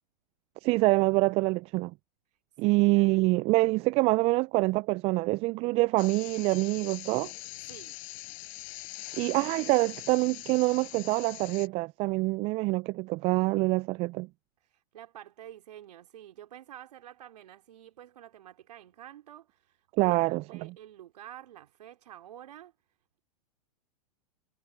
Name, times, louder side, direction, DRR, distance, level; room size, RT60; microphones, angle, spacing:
voice 1, 0.6-1.9 2.6-7.3 9.2-14.3 20.0-20.4, right 23 dB, 30° right, 0.4 m, -25 dB
voice 2, 2.3-3.1 7.6-8.0 14.6-23.2, right 11 dB, 70° right, 3.0 m, -50 dB
sound 1, 6.0-11.7, left 23 dB, 50° left, 6.4 m, -43 dB
hypercardioid pair, 110°, 21 cm